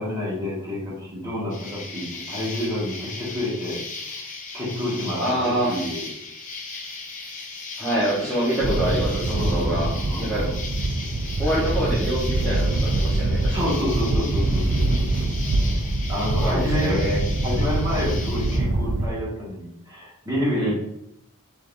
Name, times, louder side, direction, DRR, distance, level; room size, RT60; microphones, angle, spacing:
voice 1, 0.0-4.1 4.5-6.1 9.3-10.6 13.5-15.1 15.7-17.1 17.4-20.7, left 1 dB, 15° right, -7 dB, 1.7 m, -29 dB
Insect, 1.5-18.6, left 3 dB, 35° left, 0.7 m, -37 dB
voice 2, 5.2-5.7 7.8-10.4 11.4-13.6 16.4-17.2 20.6-20.7, right 1 dB, ahead, -11 dB, 1.0 m, -25 dB
sound 1, 8.6-19.1, right 2 dB, 55° right, 0.5 m, -24 dB
5.1 x 3.5 x 2.6 m, 0.77 s
head